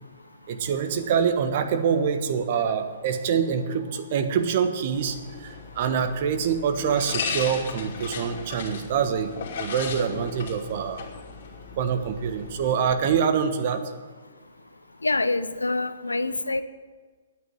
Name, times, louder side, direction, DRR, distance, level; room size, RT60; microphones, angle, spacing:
voice 1, 0.5-9.3 9.6-11.0 11.8-13.8, right 7 dB, 50° right, 8 dB, 1.3 m, -25 dB
sound 1, 4.9-12.9, left 5 dB, 55° left, 2.9 m, -36 dB
voice 2, 15.0-16.6, left 2 dB, 85° left, 13 dB, 0.7 m, -26 dB
9.4 x 9.3 x 9.4 m, 1.4 s
figure-of-eight pair, 120°, 0 cm